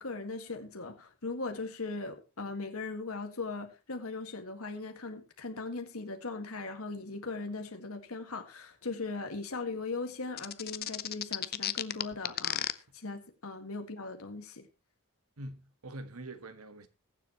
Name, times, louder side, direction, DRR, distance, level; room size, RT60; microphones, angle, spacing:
voice 1, 0.0-14.7, left 3 dB, 70° left, 1.8 m, -39 dB
sound 1, 10.4-12.7, left 11 dB, 45° left, 0.6 m, -32 dB
voice 2, 15.4-16.9, right 1 dB, 80° right, 1.4 m, -44 dB
21.0 x 7.4 x 3.0 m
head